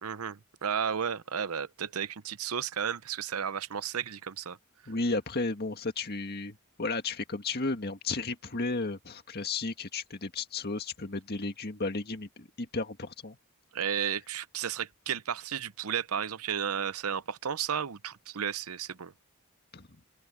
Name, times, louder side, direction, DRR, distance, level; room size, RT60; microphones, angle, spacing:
voice 1, 0.0-4.6 13.7-19.1, right 8 dB, 80° right, 0.7 m, -33 dB
voice 2, 4.9-13.4 19.7-19.9, left 3 dB, 45° left, 1.9 m, -33 dB
open air
head